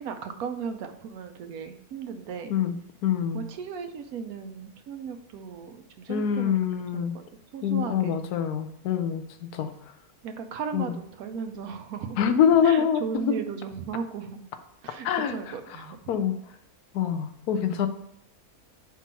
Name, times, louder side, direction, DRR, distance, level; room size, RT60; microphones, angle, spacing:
voice 1, 0.0-2.5 3.3-6.6 6.9-7.2 7.5-8.2 10.2-12.2 12.6-14.4 14.8-16.0, right 6 dB, 75° right, 8 dB, 1.1 m, -36 dB
voice 2, 2.5-3.4 6.1-7.2 7.6-9.7 10.7-11.0 12.2-13.3 15.0-15.5 16.1-16.4 16.9-17.9, left 8 dB, 85° left, 9 dB, 1.2 m, -25 dB
4.7 x 3.7 x 5.5 m, 0.78 s
omnidirectional pair, 1.6 m